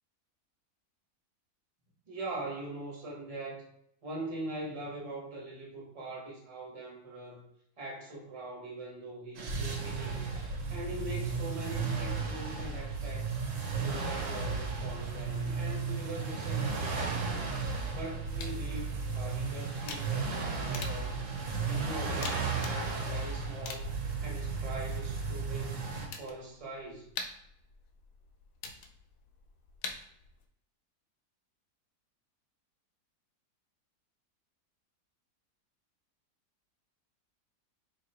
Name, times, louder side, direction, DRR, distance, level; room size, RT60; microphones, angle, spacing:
voice 1, 2.1-3.7 4.0-7.4 7.8-10.3 10.7-13.4 13.7-17.4 17.9-21.2 21.6-23.9 24.2-25.9 26.2-27.1, right 1 dB, 25° right, -3 dB, 0.9 m, -42 dB
sound 1, 9.3-26.1, right 4 dB, 60° right, 1.0 m, -34 dB
sound 2, 18.4-30.5, left 4 dB, 75° left, 1.1 m, -47 dB
2.9 x 2.9 x 4.2 m, 0.74 s
omnidirectional pair, 1.7 m